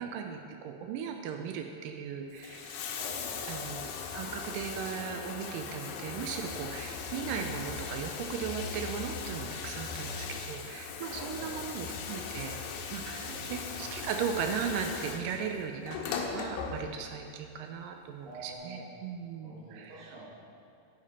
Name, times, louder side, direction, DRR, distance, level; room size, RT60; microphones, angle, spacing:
voice 1, 0.0-2.8 3.5-12.6 12.9-20.1, right 7 dB, 85° right, 4 dB, 2.0 m, -37 dB
Bathtub (filling or washing), 2.2-17.2 18.3-18.4, left 5 dB, 85° left, 2.8 m, -39 dB
voice 2, 3.0-3.8 7.2-7.5 11.1-11.9 13.2-13.8 18.3-18.9 19.4-20.2, right 2 dB, 65° right, -8 dB, 3.0 m, -47 dB
10.5 x 10.0 x 4.2 m, 2.5 s
omnidirectional pair, 4.6 m